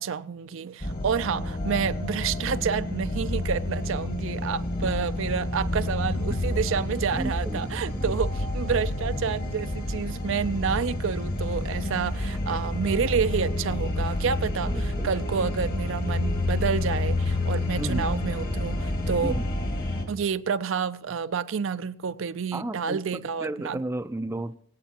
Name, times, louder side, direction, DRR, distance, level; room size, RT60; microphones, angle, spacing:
voice 1, 0.0-19.4 20.1-23.8, right 6 dB, 70° right, 0.5 m, -29 dB
sound 1, 0.8-20.0, left 1 dB, 45° left, 1.6 m, -29 dB
voice 2, 7.1-8.1 14.7-15.1 17.8-18.1 19.2-19.5 22.5-24.6, right 1 dB, 15° right, 0.4 m, -33 dB
23.0 x 8.3 x 2.9 m
head